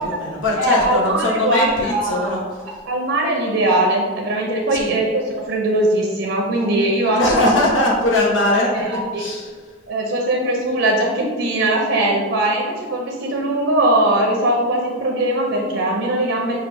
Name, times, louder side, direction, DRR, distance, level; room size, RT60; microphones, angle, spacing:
voice 1, 0.0-2.4 4.7-4.9 7.2-9.5, left 1 dB, 85° left, -3 dB, 1.1 m, -20 dB
voice 2, 0.6-2.3 2.9-5.2 5.5-7.2 8.7-9.2 9.9-16.6, right 1 dB, 65° right, -1 dB, 0.6 m, -20 dB
5.6 x 2.3 x 3.4 m, 1.5 s
head